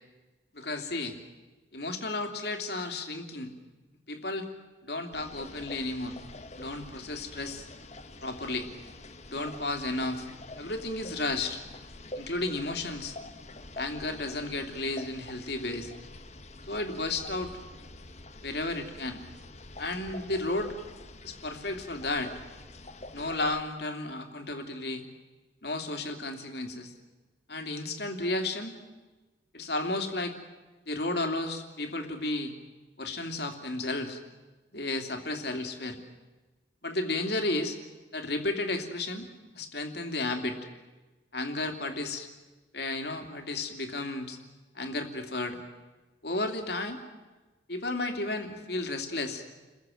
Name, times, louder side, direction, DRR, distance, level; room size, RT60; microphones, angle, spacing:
voice 1, 0.5-1.2 1.7-3.5 4.1-4.5 4.8-6.2 6.5-7.7 8.2-8.7 9.3-10.3 10.6-11.6 12.1-13.1 13.7-15.9 16.7-17.5 18.4-19.2 19.8-20.8 21.2-22.3 23.1-25.0 25.6-26.9 27.5-28.7 29.5-30.4 30.9-32.5 33.0-34.2 34.7-36.0 36.8-37.8 38.1-39.3 39.5-40.6 41.3-42.3 42.7-44.4 44.7-45.6 46.2-47.0 47.7-49.4, left 2 dB, 60° left, 5 dB, 2.9 m, -33 dB
sound 1, 5.1-23.6, left 2 dB, 40° left, 1.4 m, -46 dB
29.5 x 22.0 x 7.8 m, 1.2 s
head